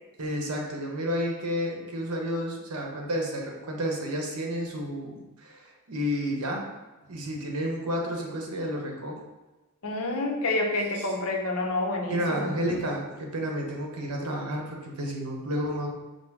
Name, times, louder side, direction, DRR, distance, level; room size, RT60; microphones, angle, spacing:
voice 1, 0.2-6.7 7.1-9.2 12.1-15.9, equal, 80° right, 0 dB, 0.9 m, -31 dB
voice 2, 9.8-12.5, left 2 dB, 65° left, 1 dB, 0.7 m, -28 dB
5.4 x 2.0 x 4.6 m, 1.1 s
head